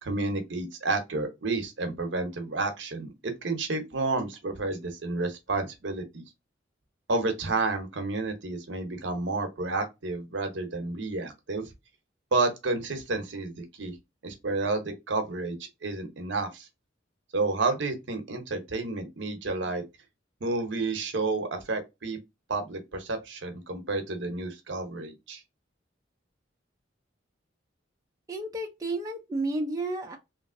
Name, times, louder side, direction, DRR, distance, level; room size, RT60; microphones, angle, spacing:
voice 1, 0.0-6.2 7.1-11.7 12.3-13.9 14.2-16.7 17.3-19.8 20.4-22.2 22.5-25.4, right 3 dB, 70° right, 0.8 m, -30 dB
voice 2, 28.3-30.2, right 2 dB, 20° right, 0.5 m, -31 dB
3.1 x 2.4 x 2.5 m
head